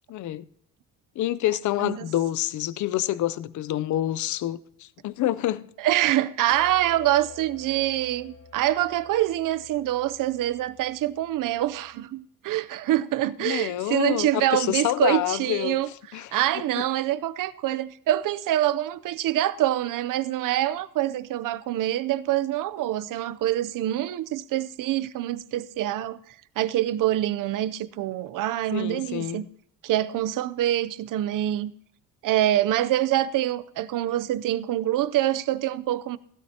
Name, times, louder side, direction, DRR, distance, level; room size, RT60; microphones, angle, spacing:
voice 1, 0.1-0.4 1.2-5.7 13.4-15.8 16.1-16.4 16.8-16.9 28.7-29.5, left 13 dB, 60° left, 0.6 m, -27 dB
voice 2, 5.8-15.9 16.3-26.2 26.6-29.4 29.8-31.7 32.2-36.2, right 13 dB, 70° right, 0.7 m, -25 dB
sound 1, 6.5-11.9, left 4 dB, 80° left, 2.5 m, -49 dB
16.0 x 12.5 x 2.8 m
cardioid pair, 135°, 33 cm